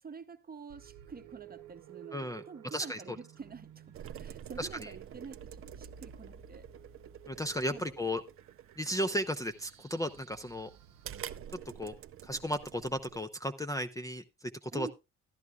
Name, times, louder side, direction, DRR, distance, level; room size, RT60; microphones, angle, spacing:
voice 1, 0.0-3.8 4.2-6.7 7.7-8.1 14.7-14.9, right 5 dB, 30° right, 0.8 m, -47 dB
sound 1, 0.7-11.4, right 8 dB, 80° right, 0.9 m, -55 dB
voice 2, 2.1-2.4 2.7-3.0 4.6-4.9 7.3-8.2 8.8-10.7 11.8-11.9 12.2-14.2 14.7-14.9, equal, 10° left, 0.5 m, -34 dB
sound 2, 3.9-13.3, right 10 dB, 45° right, 0.5 m, -48 dB
13.5 x 10.5 x 2.3 m
cardioid pair, 90°, 30 cm